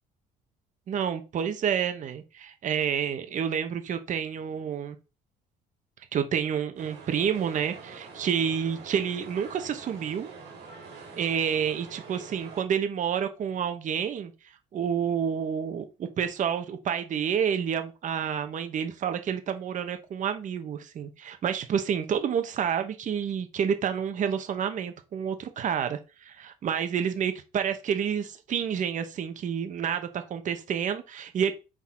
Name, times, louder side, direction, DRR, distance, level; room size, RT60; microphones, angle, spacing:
voice 1, 0.9-5.0 6.1-10.3 11.2-14.3 14.7-31.5, right 8 dB, 50° right, 1.0 m, -29 dB
sound 1, 6.8-12.6, right 4 dB, 85° right, 2.8 m, -45 dB
6.0 x 4.1 x 4.3 m
cardioid pair, 110°, 17 cm